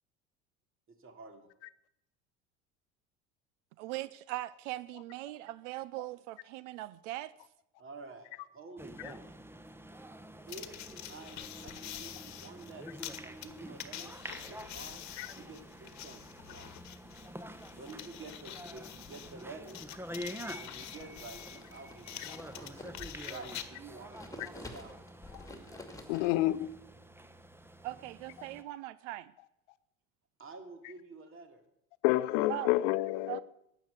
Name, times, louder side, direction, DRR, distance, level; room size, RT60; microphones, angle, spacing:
voice 1, 0.9-1.5 7.8-9.2 10.5-10.8 11.1-12.9 13.2-16.7 17.7-19.8 20.6-25.0 30.4-31.6, right 3 dB, 35° right, 2.8 m, -50 dB
voice 2, 3.8-7.3 27.8-29.3 32.5-32.7 33.3-33.4, right 17 dB, 75° right, 0.6 m, -40 dB
sound 1, 8.8-28.6, equal, 5° right, 1.0 m, -48 dB
sound 2, 10.5-23.7, left 12 dB, 50° left, 1.3 m, -47 dB
sound 3, 21.4-23.6 23.9-26.7, left 2 dB, 10° left, 2.4 m, -49 dB
voice 3, 26.1-26.7 32.0-33.4, left 17 dB, 70° left, 0.8 m, -29 dB
12.0 x 8.5 x 8.3 m
hypercardioid pair, 80°, 36 cm